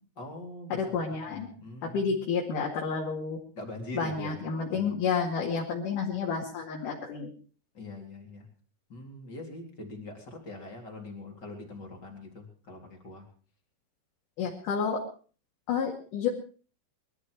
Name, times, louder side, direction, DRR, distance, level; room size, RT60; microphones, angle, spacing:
voice 1, 0.2-1.0 1.3-2.2 3.6-4.4 4.7-5.0 7.7-8.5 8.9-13.3 14.4-14.5, left 2 dB, 25° left, 1 dB, 3.8 m, -43 dB
voice 2, 0.7-1.5 1.8-3.4 3.9-7.3 14.4-15.0 15.7-16.3, left 5 dB, 55° left, -1 dB, 3.5 m, -30 dB
22.0 x 13.0 x 4.8 m, 0.41 s
omnidirectional pair, 4.9 m